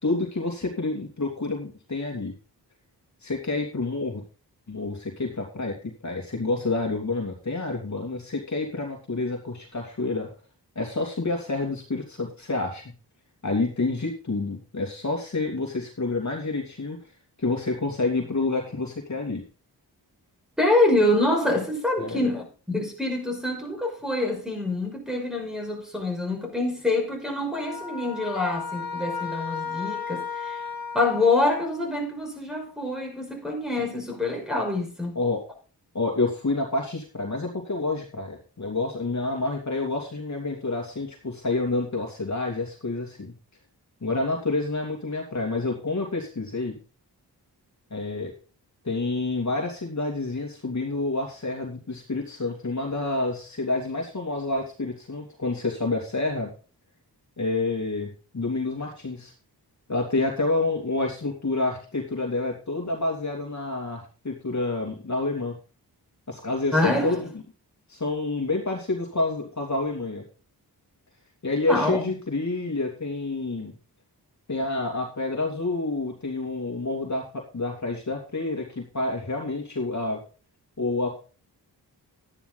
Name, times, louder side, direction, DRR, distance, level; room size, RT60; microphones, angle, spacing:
voice 1, 0.0-2.3 3.2-4.2 4.7-10.3 10.7-12.8 13.4-17.0 17.4-19.4 22.0-22.3 35.1-35.4 35.9-43.3 44.0-46.8 47.9-48.3 48.8-56.5 57.4-58.1 58.3-59.3 59.9-65.5 66.3-67.3 67.9-70.2 71.4-73.7 74.5-80.2 80.8-81.2, left 2 dB, 45° left, 2.7 m, -28 dB
voice 2, 20.6-30.6 30.9-35.2 66.7-67.2 71.7-72.1, left 2 dB, ahead, 5.8 m, -26 dB
sound 1, 27.5-32.0, left 5 dB, 60° left, 1.9 m, -34 dB
12.5 x 10.0 x 4.0 m
cardioid pair, 60°, 40 cm